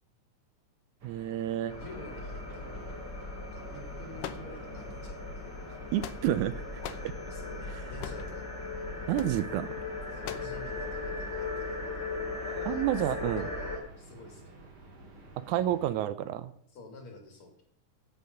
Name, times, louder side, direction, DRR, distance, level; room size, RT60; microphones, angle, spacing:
sound 1, 1.0-16.0, right 2 dB, 35° right, 2.2 m, -52 dB
voice 1, 1.0-1.7 5.9-6.5 7.0-7.1 9.1-9.7 12.7-13.5 15.4-16.5, right 12 dB, 85° right, 13 dB, 2.0 m, -29 dB
sound 2, 1.7-13.8, left 3 dB, 25° left, 2.3 m, -38 dB
voice 2, 1.8-3.1 3.4-5.6 7.2-8.7 10.1-12.2 12.4-14.6 16.7-17.6, left 2 dB, 50° left, 3 dB, 2.7 m, -49 dB
sound 3, 4.2-5.0 5.7-6.5 6.8-7.1 8.0-8.3 9.1-9.4 10.2-10.6, left 9 dB, 75° left, 1.4 m, -41 dB
9.3 x 8.2 x 6.5 m, 0.66 s
omnidirectional pair, 3.5 m